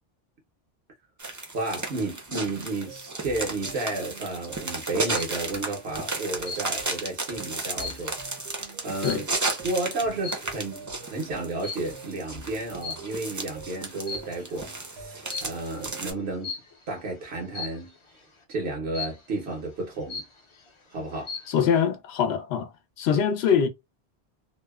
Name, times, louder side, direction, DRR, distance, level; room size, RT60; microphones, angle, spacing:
sound 1, 1.2-16.1, right 3 dB, 25° right, 0.4 m, -34 dB
voice 1, 1.5-8.2 8.8-9.3 9.6-16.5 16.9-17.9 18.5-20.2 20.9-21.3, right 2 dB, 85° right, 1.1 m, -32 dB
sound 2, 2.9-16.1, right 3 dB, 65° right, 0.9 m, -47 dB
sound 3, 4.8-5.4 6.4-7.0 7.4-9.6 10.2-10.6 11.6-12.0 12.8-13.4 13.9-14.6 15.3-15.7 16.4-16.8 17.5-18.0 18.9-19.4 19.8-19.9 20.1-20.7 21.1-21.6, left 4 dB, 40° left, 0.5 m, -38 dB
voice 2, 21.5-22.7 23.0-23.7, left 7 dB, 90° left, 0.8 m, -23 dB
2.7 x 2.1 x 2.2 m
omnidirectional pair, 1.0 m